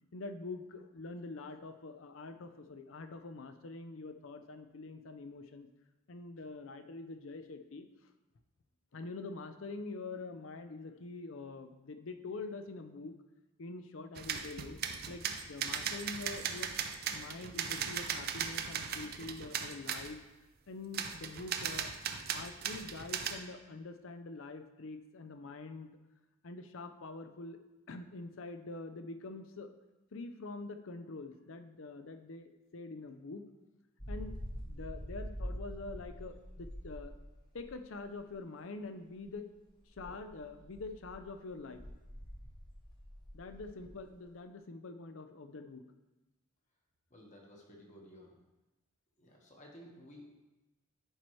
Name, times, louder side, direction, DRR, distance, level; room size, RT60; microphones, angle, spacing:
voice 1, 0.1-5.7 6.1-7.9 8.9-13.2 13.6-14.8 15.1-16.7 17.1-20.2 20.7-21.9 22.3-25.9 26.4-27.6 27.9-29.7 30.1-33.5 34.1-34.3 34.6-37.1 37.5-39.5 40.0-41.8 43.3-45.8, left 3 dB, 70° left, 8 dB, 0.6 m, -45 dB
sound 1, 14.1-20.1 20.9-23.4, right 7 dB, 45° right, 0.5 m, -38 dB
sound 2, 34.0-38.3 39.2-39.3 39.9-44.3, equal, 20° left, 1.1 m, -45 dB
voice 2, 47.1-48.4 49.2-50.3, equal, 35° left, -1 dB, 1.3 m, -54 dB
11.0 x 4.5 x 3.2 m, 1.0 s
head